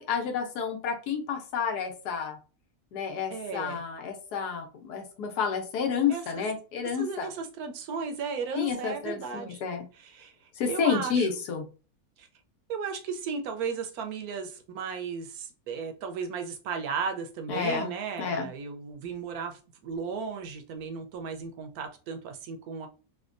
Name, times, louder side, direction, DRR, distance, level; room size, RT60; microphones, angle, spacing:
voice 1, 0.0-2.4 2.9-7.3 8.5-9.8 10.6-11.6 17.5-17.9 18.2-18.5, left 6 dB, 75° left, 4 dB, 1.2 m, -30 dB
voice 2, 3.3-3.8 6.1-6.4 7.0-9.6 10.0-10.3 10.7-11.3 12.2-12.3 12.7-22.9, right 5 dB, 75° right, 5 dB, 1.0 m, -35 dB
3.4 x 2.2 x 2.4 m, 0.34 s
omnidirectional pair, 1.7 m